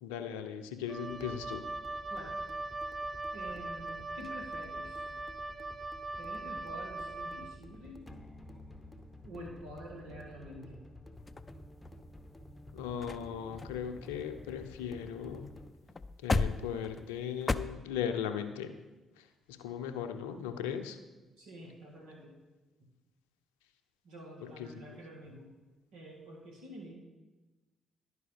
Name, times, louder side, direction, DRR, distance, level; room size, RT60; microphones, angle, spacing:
voice 1, 0.0-1.7 12.7-15.5 16.2-18.8 19.2-21.0 24.4-25.0, left 8 dB, 90° left, 8 dB, 0.5 m, -38 dB
Wind instrument woodwind instrument, 0.9-7.6, right 2 dB, 45° right, 0.5 m, -40 dB
sound 1, 1.1-15.7, left 1 dB, 10° left, 0.9 m, -52 dB
voice 2, 2.1-2.4 3.3-5.1 6.2-8.1 9.2-10.8 21.4-22.3 24.0-25.5 25.9-26.9, equal, 80° right, -1 dB, 1.9 m, -48 dB
sound 2, 11.3-12.1 12.7-12.8 13.0-13.3 13.6-15.2 15.4-15.6 15.9-17.6, left 3 dB, 30° left, 0.4 m, -35 dB
11.0 x 4.8 x 5.1 m, 1.2 s
hypercardioid pair, 50°, 0 cm